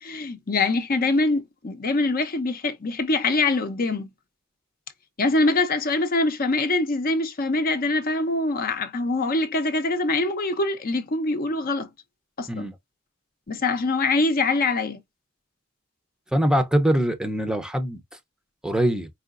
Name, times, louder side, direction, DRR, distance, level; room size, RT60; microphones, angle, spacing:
voice 1, 0.0-4.1 5.2-11.9 12.4-12.7 13.5-15.0, left 2 dB, 45° left, 0.7 m, -24 dB
voice 2, 16.3-18.0 18.6-19.1, right 1 dB, 5° right, 0.6 m, -23 dB
4.9 x 2.9 x 2.5 m
head